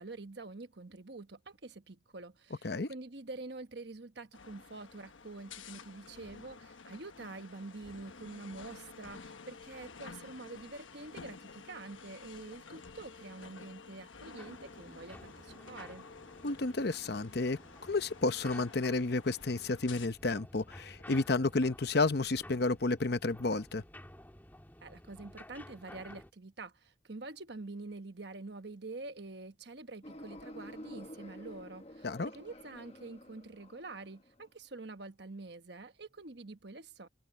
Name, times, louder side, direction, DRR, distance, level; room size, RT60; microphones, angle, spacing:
voice 1, 0.0-16.1 24.8-37.1, right 3 dB, 60° right, 1.2 m, -46 dB
sound 1, 4.3-20.1, left 4 dB, 80° left, 1.2 m, -51 dB
sound 2, 14.4-26.3, left 1 dB, 10° left, 2.6 m, -53 dB
voice 2, 16.4-23.8 32.0-32.3, left 3 dB, 55° left, 0.8 m, -31 dB
sound 3, 30.0-34.4, left 1 dB, 30° left, 1.3 m, -50 dB
head